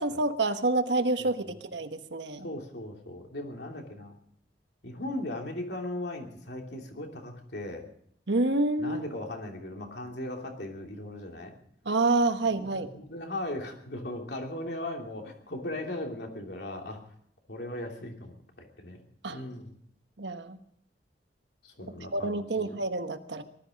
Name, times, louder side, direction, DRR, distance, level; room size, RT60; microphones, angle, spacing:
voice 1, 0.0-2.5 8.3-9.0 11.8-12.9 19.2-19.4 20.2-20.6 22.0-23.4, right 2 dB, 75° right, 8 dB, 1.3 m, -28 dB
voice 2, 1.2-1.5 2.4-4.1 4.8-7.9 8.8-11.5 12.6-17.0 17.5-18.4 18.8-19.8 21.6-22.7, left 1 dB, 65° left, 2 dB, 3.0 m, -38 dB
19.0 x 13.0 x 5.3 m, 0.67 s
head